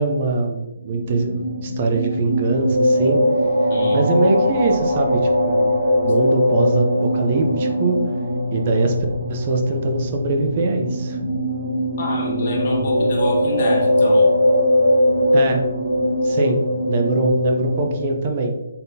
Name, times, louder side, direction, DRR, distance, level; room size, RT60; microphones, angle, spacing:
voice 1, 0.0-3.2 3.9-5.7 6.0-8.0 8.5-8.9 9.3-11.2 15.3-15.6 16.2-18.5, right 3 dB, 40° right, 3 dB, 0.5 m, -22 dB
sound 1, 0.8-18.1, left 1 dB, 90° right, 1.0 m, -20 dB
voice 2, 3.7-4.0 12.0-14.3, left 1 dB, 45° left, -2 dB, 1.2 m, -26 dB
3.8 x 3.7 x 2.7 m, 0.98 s
figure-of-eight pair, 145°, 0 cm